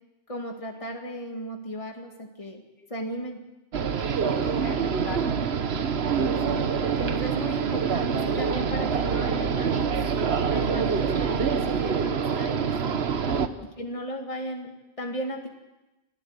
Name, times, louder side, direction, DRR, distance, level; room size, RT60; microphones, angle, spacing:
voice 1, 0.3-2.6 2.9-3.4 4.2-4.8 6.4-10.0 10.5-12.8 13.8-15.5, right 1 dB, 35° left, 2 dB, 2.2 m, -35 dB
sound 1, 3.7-13.5, right 6 dB, 90° right, 1.3 m, -26 dB
voice 2, 3.9-5.4 13.1-13.7, left 2 dB, 80° left, 1 dB, 3.3 m, -43 dB
25.0 x 16.0 x 8.1 m, 1.0 s
omnidirectional pair, 1.0 m